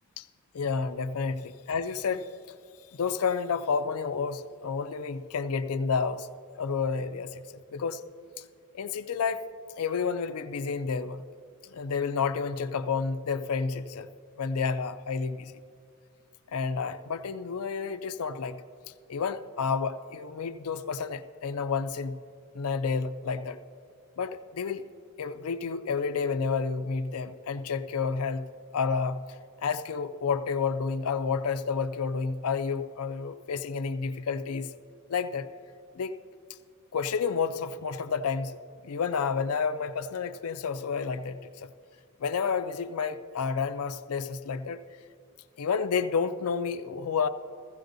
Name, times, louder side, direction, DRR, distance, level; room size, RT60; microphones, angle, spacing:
voice 1, 0.5-2.3 2.9-6.3 6.6-7.4 7.7-8.0 8.7-9.5 9.7-11.2 11.6-14.1 14.4-15.5 16.5-18.6 19.1-22.2 22.5-23.6 24.2-24.9 25.2-29.2 29.6-34.7 35.1-35.5 35.9-36.2 36.9-38.6 38.8-41.7 42.2-44.8 45.6-47.3, left 5 dB, 80° left, 9 dB, 0.5 m, -30 dB
16.5 x 15.5 x 2.6 m, 2.3 s
head